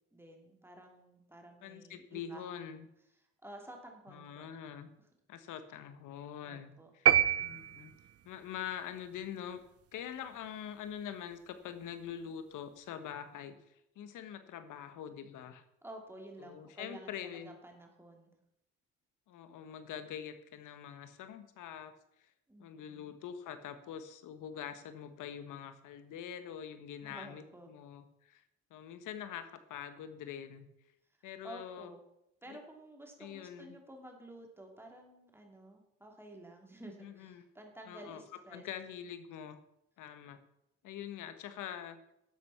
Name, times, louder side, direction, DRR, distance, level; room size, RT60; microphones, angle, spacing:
voice 1, 0.1-2.4 3.4-4.5 6.4-6.9 15.8-18.3 22.5-23.1 27.0-27.7 31.4-32.0 32.4-38.7, right 1 dB, 10° right, 1 dB, 3.0 m, -52 dB
voice 2, 1.6-2.9 4.1-4.9 5.3-7.1 7.4-7.9 8.2-9.6 9.9-15.6 16.4-17.5 19.3-22.0 22.6-28.4 28.7-30.7 31.2-31.9 32.5-32.6 33.2-33.8 37.0-37.4 37.9-39.6 40.0-40.4 40.8-42.0, left 9 dB, 85° left, 10 dB, 1.4 m, -44 dB
sound 1, 7.1-8.3, right 11 dB, 50° right, 0.7 m, -27 dB
12.0 x 8.0 x 5.8 m, 0.82 s
cardioid pair, 90°, 30 cm